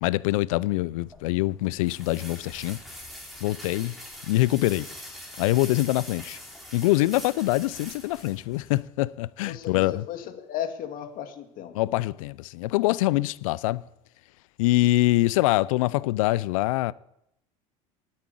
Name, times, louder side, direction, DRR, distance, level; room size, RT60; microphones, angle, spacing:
voice 1, 0.0-2.8 3.4-3.9 4.3-4.9 5.4-6.4 6.7-10.0 11.7-13.8 14.6-16.9, left 18 dB, 75° left, 0.5 m, -24 dB
sound 1, 1.0-8.8, equal, ahead, 4.3 m, -44 dB
voice 2, 9.5-11.9, left 10 dB, 55° left, 2.2 m, -35 dB
9.6 x 8.7 x 8.4 m
hypercardioid pair, 80°, 18 cm